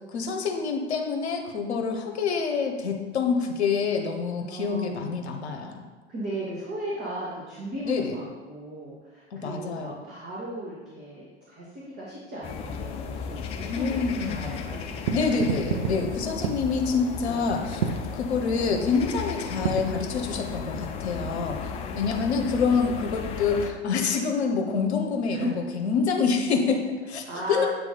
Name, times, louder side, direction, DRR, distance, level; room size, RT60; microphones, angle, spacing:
voice 1, 0.1-5.9 7.8-8.1 9.3-9.9 13.6-14.7 15.1-21.6 21.9-27.7, left 5 dB, 70° left, 3 dB, 0.9 m, -27 dB
voice 2, 4.4-5.7 6.1-13.4 13.7-16.0 17.3-17.4 21.7-22.3 22.9-23.0 25.3-25.5 27.3-27.7, right 1 dB, 30° right, -7 dB, 1.6 m, -37 dB
sound 1, 12.4-23.7, left 6 dB, 20° left, 0.3 m, -35 dB
sound 2, 15.0-21.5, right 7 dB, 50° right, 0.6 m, -33 dB
8.3 x 3.1 x 3.9 m, 1.3 s
figure-of-eight pair, 90°, 34 cm